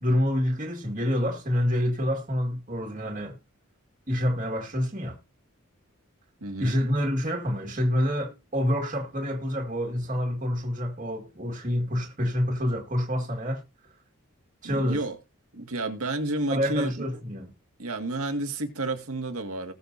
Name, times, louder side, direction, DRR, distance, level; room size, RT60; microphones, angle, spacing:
voice 1, 0.0-3.4 4.1-5.2 6.6-13.9 14.6-15.0 16.5-17.5, equal, 35° right, 1.9 m, -27 dB
voice 2, 6.4-6.8 14.6-15.2 15.5-17.1 17.8-19.7, right 2 dB, 85° right, 2.0 m, -31 dB
20.0 x 6.8 x 2.7 m
head